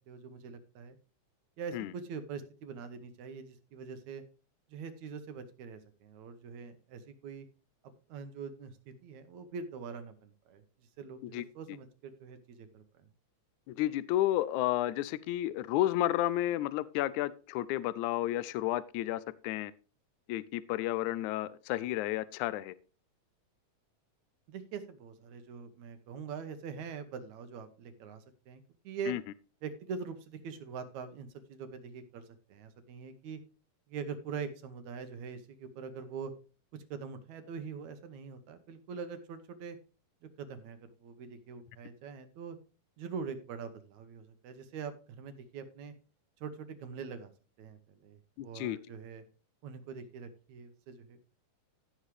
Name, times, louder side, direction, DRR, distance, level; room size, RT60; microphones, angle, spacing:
voice 1, 0.1-1.0 1.6-4.2 4.7-7.5 8.1-10.6 11.0-12.8 24.5-29.1 29.6-33.4 33.9-36.3 36.7-39.8 40.4-42.6 43.0-45.9 46.4-47.3 47.6-49.2 49.6-51.2, right 5 dB, 65° right, 2.2 m, -43 dB
voice 2, 13.7-19.7 20.3-22.7 29.1-29.2 48.4-48.8, left 14 dB, 80° left, 1.7 m, -32 dB
15.0 x 6.5 x 3.2 m
omnidirectional pair, 3.9 m